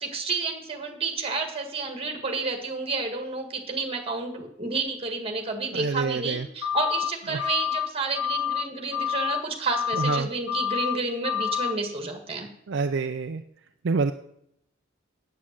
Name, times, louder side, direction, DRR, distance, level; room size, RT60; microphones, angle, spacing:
voice 1, 0.0-12.5, right 3 dB, 30° right, 4 dB, 1.8 m, -30 dB
voice 2, 5.8-6.5 7.3-7.4 9.9-10.3 12.7-13.4 13.8-14.1, right 4 dB, 60° right, 7 dB, 0.4 m, -26 dB
sound 1, 6.6-7.1 7.4-7.9 8.1-8.6 8.9-9.4 9.7-10.2 10.5-11.0 11.2-11.7, left 9 dB, 80° left, 2.1 m, -28 dB
8.6 x 8.3 x 7.4 m, 0.75 s
head